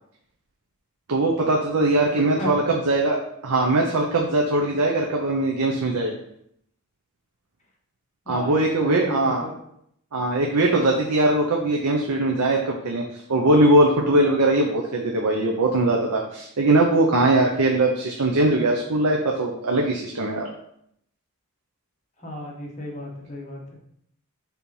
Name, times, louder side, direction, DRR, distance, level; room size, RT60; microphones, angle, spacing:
voice 1, 1.1-6.1 8.3-9.4 10.1-20.5, right 2 dB, 85° right, 0 dB, 0.8 m, -21 dB
voice 2, 2.1-2.5 8.3-9.5 22.2-23.7, left 1 dB, 35° left, -2 dB, 1.4 m, -34 dB
4.5 x 4.1 x 5.5 m, 0.73 s
head